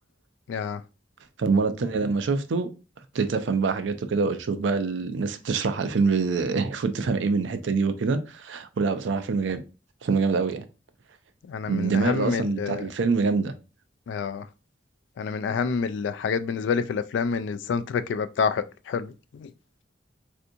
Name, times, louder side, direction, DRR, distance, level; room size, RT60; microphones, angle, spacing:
voice 1, 0.5-0.8 11.5-12.8 14.1-14.4 15.2-19.5, left 5 dB, 80° left, 0.3 m, -28 dB
voice 2, 1.4-2.7 3.1-9.6 10.0-10.7 11.7-13.5, right 4 dB, 80° right, 0.4 m, -25 dB
3.4 x 2.6 x 2.7 m
head